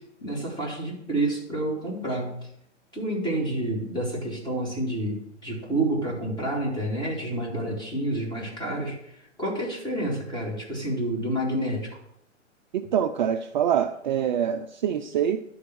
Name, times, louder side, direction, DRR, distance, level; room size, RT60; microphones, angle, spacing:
voice 1, 0.2-2.3 2.9-9.0 9.4-11.9, right 1 dB, 10° left, -3 dB, 2.7 m, -29 dB
voice 2, 12.7-15.4, right 9 dB, 40° right, 7 dB, 0.5 m, -25 dB
11.5 x 3.9 x 6.2 m, 0.74 s
figure-of-eight pair, 125°, 37 cm